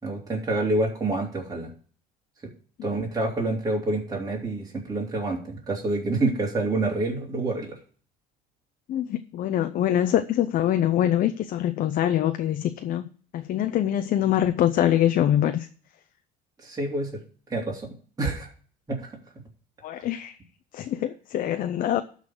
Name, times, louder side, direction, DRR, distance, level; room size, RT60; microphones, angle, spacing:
voice 1, 0.0-1.7 2.8-7.8 16.6-17.2 17.5-17.9 18.2-18.5 18.9-19.1, right 2 dB, 20° right, 3.4 m, -27 dB
voice 2, 8.9-13.0 13.3-15.7 19.8-20.4 20.7-22.0, left 11 dB, 55° left, 0.7 m, -24 dB
12.5 x 4.2 x 7.7 m
supercardioid pair, 90°, 17 cm